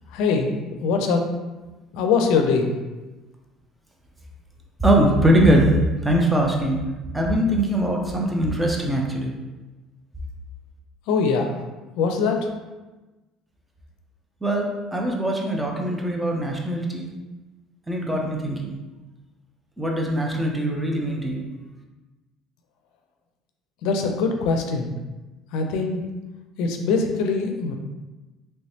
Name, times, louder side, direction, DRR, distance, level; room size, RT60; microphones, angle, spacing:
voice 1, 0.1-1.2 1.9-2.7 11.1-11.6 12.0-12.4 23.8-25.0 25.5-26.0 26.6-27.7, left 4 dB, 75° left, 4 dB, 0.4 m, -22 dB
voice 2, 4.8-6.9 7.1-9.3 14.4-17.1 17.9-18.8 19.8-21.5, right 1 dB, 10° right, -1 dB, 0.7 m, -22 dB
3.3 x 3.1 x 2.8 m, 1.1 s
supercardioid pair, 95°, 0 cm